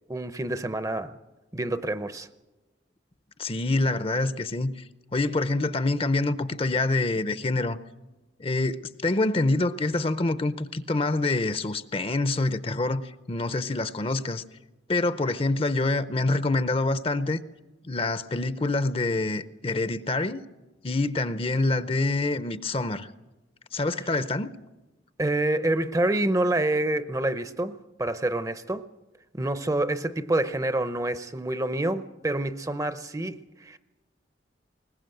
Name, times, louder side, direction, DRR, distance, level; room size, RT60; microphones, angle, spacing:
voice 1, 0.1-1.2 1.5-2.3 25.2-28.9 29.4-33.8, right 1 dB, 20° right, 0.6 m, -27 dB
voice 2, 3.4-4.7 5.1-7.8 8.4-14.4 14.9-17.4 17.8-20.4 20.8-23.1 23.7-24.5, left 2 dB, 30° left, 0.6 m, -26 dB
21.0 x 19.5 x 7.8 m
head